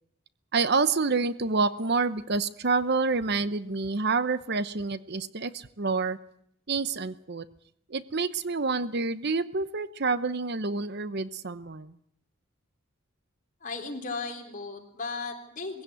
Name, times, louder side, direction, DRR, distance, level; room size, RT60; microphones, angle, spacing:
voice 1, 0.5-6.2 6.7-7.4 7.9-11.9, right 4 dB, 50° right, 15 dB, 0.8 m, -28 dB
voice 2, 13.6-15.8, left 3 dB, 40° left, 3 dB, 3.7 m, -36 dB
21.0 x 16.5 x 9.3 m, 0.71 s
head